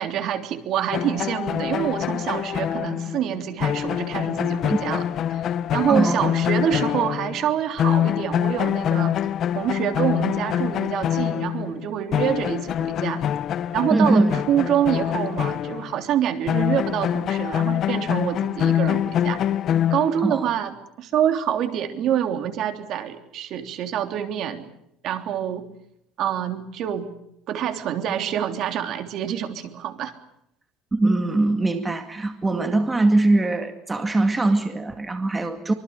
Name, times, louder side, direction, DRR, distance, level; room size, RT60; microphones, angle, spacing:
voice 1, 0.0-9.2 9.5-13.2 13.7-19.4 19.9-24.7 25.0-25.6 26.2-27.1 27.5-30.1, right 10 dB, 50° right, 7 dB, 3.2 m, -26 dB
sound 1, 0.9-7.5 7.8-16.0 16.5-20.4, left 10 dB, 40° left, 0.9 m, -25 dB
voice 2, 5.9-6.3 13.9-14.4 20.2-20.4 30.9-35.7, right 2 dB, 15° right, 6 dB, 2.2 m, -21 dB
25.0 x 24.0 x 6.6 m, 0.79 s
cardioid pair, 145°, 0 cm